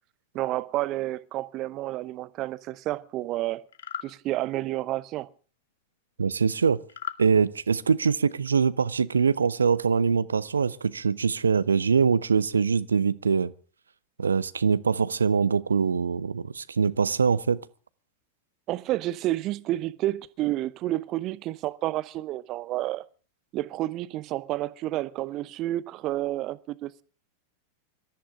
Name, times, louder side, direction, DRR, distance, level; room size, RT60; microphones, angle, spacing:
voice 1, 0.3-3.6 4.0-5.3 18.7-23.1 23.5-27.0, right 15 dB, 35° right, 0.8 m, -30 dB
sound 1, 3.7-4.1 6.9-7.2, left 10 dB, 60° left, 1.1 m, -36 dB
voice 2, 6.2-6.8 7.2-13.5 14.2-17.6, right 6 dB, 75° right, 0.7 m, -23 dB
25.0 x 14.0 x 3.7 m
figure-of-eight pair, 90°, 0 cm